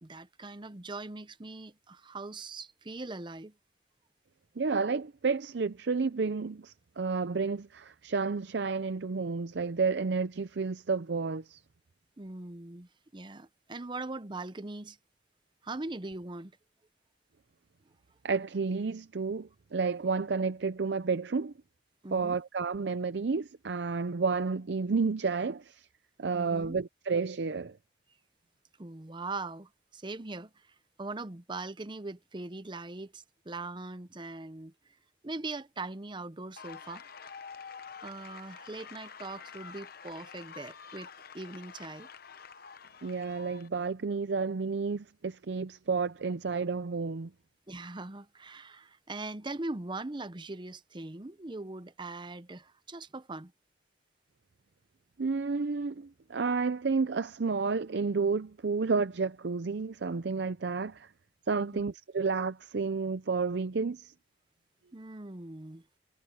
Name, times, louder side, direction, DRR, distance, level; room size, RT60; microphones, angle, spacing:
voice 1, 0.0-3.5 12.2-15.0 15.6-16.5 22.0-22.4 26.3-26.8 28.8-34.7 35.2-37.0 38.0-41.1 41.3-42.1 47.7-53.5 61.6-61.8 64.9-65.8, right 2 dB, 25° right, 0.7 m, -41 dB
voice 2, 4.6-11.6 18.2-21.5 22.1-25.9 26.2-27.8 43.0-47.3 55.2-61.1 61.5-64.1, right 4 dB, 60° right, 0.5 m, -31 dB
sound 1, 36.6-43.8, left 6 dB, 50° left, 0.9 m, -48 dB
head